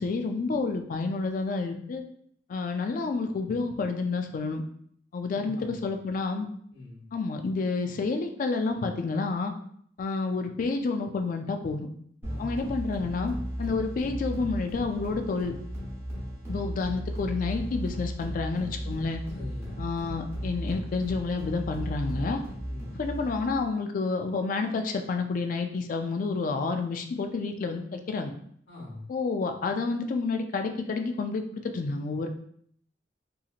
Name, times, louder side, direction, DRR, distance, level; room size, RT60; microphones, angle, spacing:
voice 1, 0.0-2.0 2.5-4.6 5.1-6.5 7.1-9.5 10.0-11.9 12.4-15.5 16.5-19.2 19.8-22.4 22.9-28.3 29.1-32.3, left 4 dB, 45° left, 6 dB, 0.3 m, -29 dB
voice 2, 5.3-5.9 6.7-7.1 12.3-12.6 19.3-19.9 22.6-23.0 28.7-29.1, left 2 dB, 75° left, -6 dB, 0.9 m, -43 dB
sound 1, 12.2-23.7, equal, 15° right, 0.9 m, -36 dB
2.8 x 2.7 x 2.4 m, 0.65 s
head